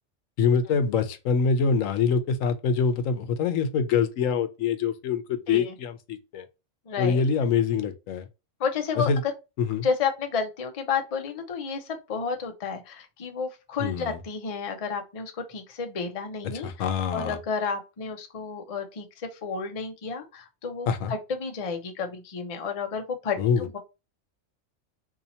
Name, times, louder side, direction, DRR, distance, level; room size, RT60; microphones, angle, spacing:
voice 1, 0.4-6.5 7.0-8.3 9.1-9.2 9.6-9.9 13.8-14.2 16.4-17.4 20.9-21.1 23.4-23.7, left 6 dB, 80° left, 1.0 m, -25 dB
voice 2, 6.9-7.2 8.6-9.3 9.8-16.7 17.1-23.8, left 5 dB, 40° left, 0.5 m, -31 dB
2.8 x 2.8 x 3.9 m
omnidirectional pair, 1.3 m